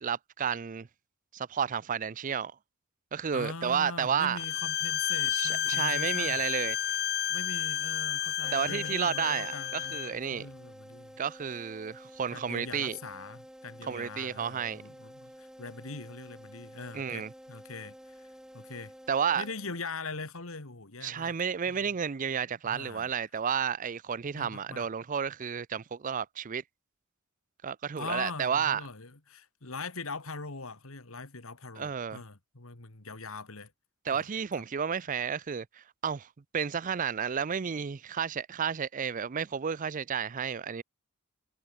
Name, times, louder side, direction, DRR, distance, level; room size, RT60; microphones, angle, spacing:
voice 1, 0.0-0.9 1.3-2.5 3.1-4.4 5.3-6.8 8.5-10.5 11.2-13.0 13.8-14.8 16.9-17.3 19.1-19.5 21.0-26.6 27.6-28.8 31.8-32.2 34.1-36.3 36.5-40.8, right 7 dB, 35° right, 0.4 m, -31 dB
voice 2, 3.3-6.4 7.3-11.1 12.3-18.3 18.5-18.9 19.3-21.4 21.7-21.9 22.6-23.1 24.3-24.9 28.0-33.7 34.1-34.2, left 3 dB, 70° left, 2.3 m, -42 dB
Bowed string instrument, 4.4-10.1, left 11 dB, 45° left, 0.8 m, -31 dB
sound 1, 8.4-20.1, equal, 5° right, 3.8 m, -51 dB
head